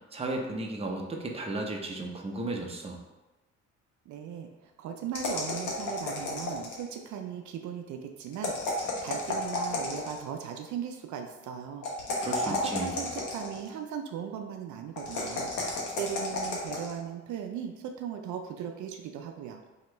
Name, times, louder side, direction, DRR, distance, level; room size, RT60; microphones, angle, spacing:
voice 1, 0.1-3.0 12.2-13.1, right 2 dB, 20° right, 1 dB, 0.7 m, -34 dB
voice 2, 4.1-11.9 12.2-15.5 16.0-19.6, right 8 dB, 75° right, 4 dB, 0.5 m, -38 dB
sound 1, 5.1-6.9 8.3-10.3 11.8-13.7 15.0-16.9, left 2 dB, 85° left, 1.0 m, -32 dB
3.0 x 2.9 x 4.4 m, 1.1 s
cardioid pair, 90°, 30 cm